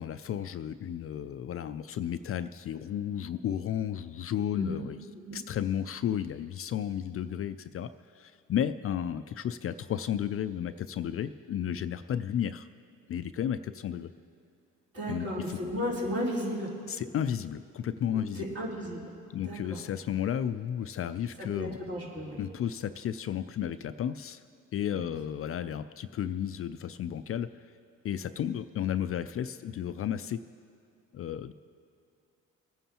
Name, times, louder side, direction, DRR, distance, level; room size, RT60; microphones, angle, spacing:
voice 1, 0.0-5.0 5.3-7.9 8.2-12.7 13.1-14.1 15.1-15.6 16.9-18.5 19.3-21.8 22.4-24.4 24.7-27.5 28.0-30.4 31.1-31.5, left 9 dB, 50° left, 11 dB, 0.4 m, -33 dB
voice 2, 14.9-16.7 18.1-19.1 19.4-19.8 21.5-22.4 24.9-25.0, equal, 50° right, -6 dB, 3.6 m, -34 dB
26.0 x 9.2 x 2.9 m, 2.4 s
cardioid pair, 90°, 30 cm